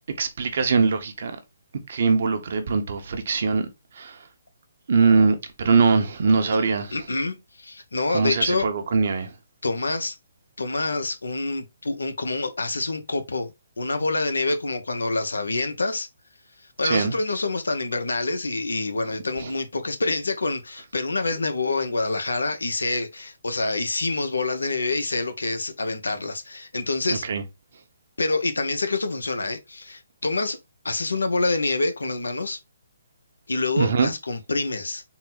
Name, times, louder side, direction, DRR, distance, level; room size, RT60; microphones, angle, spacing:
voice 1, 0.2-1.4 1.9-3.7 3.9-4.2 4.9-7.0 8.1-9.3 16.8-17.1 19.4-19.5 27.1-27.4 33.8-34.1, right 4 dB, 60° right, 0.8 m, -22 dB
voice 2, 6.9-8.7 9.6-10.1 10.6-13.5 13.8-16.1 16.8-27.2 28.2-30.6 30.8-32.6 33.5-35.0, left 3 dB, 90° left, 0.8 m, -26 dB
4.0 x 2.1 x 3.9 m
hypercardioid pair, 150°, 0 cm